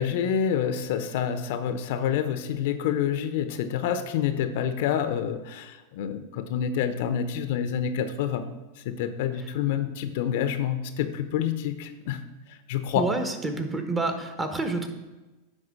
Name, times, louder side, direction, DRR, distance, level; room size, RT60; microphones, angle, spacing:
voice 1, 0.0-8.5 8.9-12.2 12.7-13.1, left 8 dB, 60° left, 10 dB, 0.6 m, -27 dB
voice 2, 12.9-14.9, right 2 dB, 20° right, 6 dB, 1.3 m, -28 dB
9.9 x 3.9 x 6.0 m, 1.1 s
hypercardioid pair, 95°, 0 cm